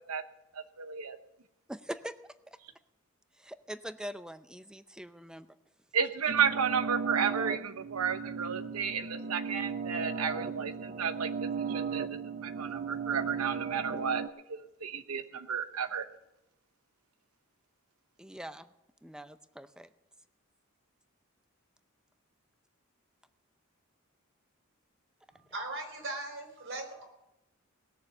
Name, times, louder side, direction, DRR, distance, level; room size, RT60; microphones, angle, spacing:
voice 1, 0.5-1.2 5.9-11.3 11.7-12.0 12.4-14.2 14.5-16.1, right 7 dB, 90° right, 10 dB, 0.9 m, -32 dB
voice 2, 1.7-2.2 2.5-2.6 3.3-5.5 18.2-18.7 19.0-19.9, equal, 5° right, 11 dB, 0.6 m, -43 dB
sound 1, 6.3-14.3, right 5 dB, 45° right, 0.6 m, -36 dB
voice 3, 25.3-27.0, right 2 dB, 65° right, 3 dB, 4.4 m, -39 dB
19.0 x 7.1 x 6.7 m, 0.91 s
head